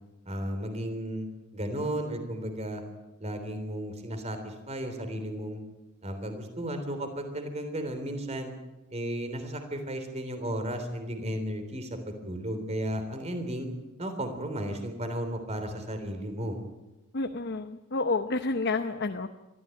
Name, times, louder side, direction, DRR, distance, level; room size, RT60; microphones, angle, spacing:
voice 1, 0.3-1.3 1.5-2.8 3.2-5.6 6.0-8.5 8.9-13.7 14.0-16.6, right 1 dB, 30° right, 7 dB, 3.5 m, -34 dB
voice 2, 17.1-19.3, left 3 dB, 55° left, 7 dB, 0.9 m, -29 dB
23.0 x 14.5 x 9.2 m, 1.1 s
head